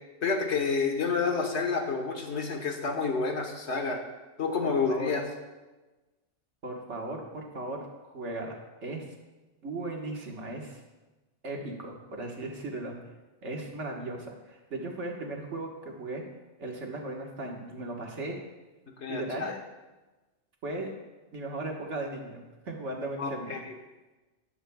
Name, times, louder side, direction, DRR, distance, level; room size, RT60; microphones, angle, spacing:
voice 1, 0.2-4.0 4.4-5.2 19.0-19.6 23.2-23.7, left 4 dB, 65° left, 3 dB, 1.5 m, -29 dB
voice 2, 4.6-5.1 6.6-7.8 8.0-8.5 8.8-9.1 9.6-10.8 11.4-13.0 13.4-16.2 16.6-18.4 19.1-19.5 20.6-20.9 21.3-23.6, right 2 dB, 70° right, 0 dB, 1.8 m, -37 dB
12.5 x 10.5 x 2.3 m, 1.1 s
omnidirectional pair, 1.2 m